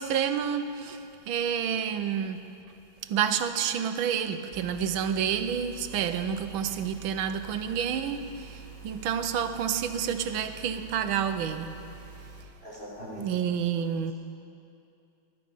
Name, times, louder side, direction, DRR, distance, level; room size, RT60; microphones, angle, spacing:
voice 1, 0.0-2.4 3.0-11.7 13.2-14.1, right 8 dB, 85° right, 1.6 m, -29 dB
sound 1, 4.5-12.4, right 3 dB, 20° right, 1.8 m, -47 dB
voice 2, 12.6-13.3, equal, 30° left, 5.0 m, -41 dB
20.0 x 12.5 x 5.5 m
omnidirectional pair, 2.2 m